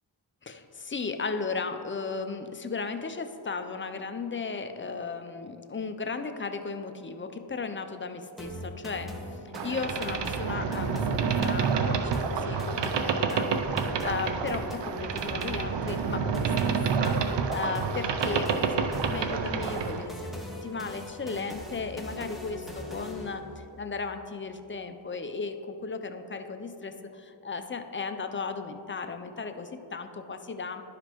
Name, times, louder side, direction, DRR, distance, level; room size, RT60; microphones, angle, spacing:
voice 1, 0.4-9.1 9.6-20.3 20.6-30.8, left 4 dB, 25° left, 7 dB, 0.5 m, -35 dB
sound 1, 8.4-23.4, left 1 dB, ahead, 1.0 m, -41 dB
Boat Water vehicle, 9.5-20.1, right 6 dB, 65° right, 0.6 m, -28 dB
11.5 x 5.0 x 3.0 m, 2.8 s
cardioid pair, 50°, 46 cm